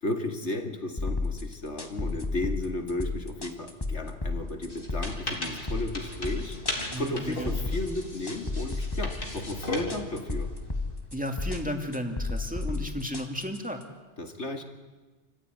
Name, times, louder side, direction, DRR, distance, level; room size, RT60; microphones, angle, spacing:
voice 1, 0.0-6.6 7.0-10.5 14.2-14.6, left 2 dB, 85° left, 5 dB, 2.6 m, -34 dB
sound 1, 1.0-13.8, left 3 dB, 20° left, 1.7 m, -33 dB
sound 2, 4.7-11.0, left 1 dB, 50° left, 3.7 m, -37 dB
voice 2, 6.9-7.6 11.1-13.8, equal, 5° right, 3 dB, 2.5 m, -33 dB
28.0 x 15.0 x 9.5 m, 1.3 s
omnidirectional pair, 1.2 m